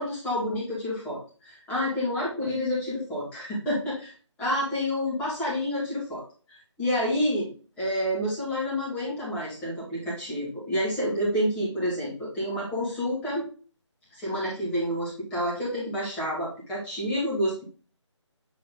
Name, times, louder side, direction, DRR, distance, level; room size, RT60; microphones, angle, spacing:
voice 1, 0.0-4.1 4.4-6.2 6.5-7.5 7.8-13.5 14.1-17.6, equal, 5° left, -8 dB, 2.0 m, -29 dB
7.5 x 3.7 x 3.7 m, 0.38 s
figure-of-eight pair, 155°, 16 cm